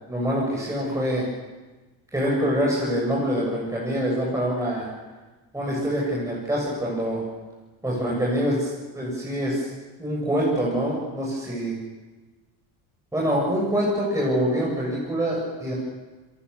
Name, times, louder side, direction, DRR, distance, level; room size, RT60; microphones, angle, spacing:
voice 1, 0.1-1.2 2.1-4.9 5.5-7.2 7.8-9.7 10.0-11.8 13.1-15.7, equal, 5° right, -4 dB, 7.4 m, -25 dB
27.5 x 22.5 x 7.1 m, 1.2 s
cardioid pair, 125°, 42 cm